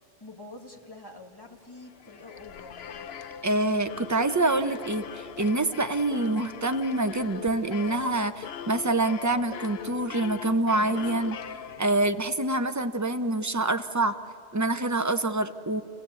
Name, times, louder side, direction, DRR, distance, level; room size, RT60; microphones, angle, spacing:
voice 1, 0.2-3.1, left 2 dB, 20° left, 1 dB, 2.3 m, -46 dB
sound 1, 1.8-12.3, left 8 dB, 65° left, 1.0 m, -41 dB
voice 2, 3.4-11.4 11.8-14.2 14.5-15.8, right 2 dB, 20° right, 8 dB, 0.7 m, -26 dB
29.5 x 16.5 x 8.3 m, 2.6 s
omnidirectional pair, 1.2 m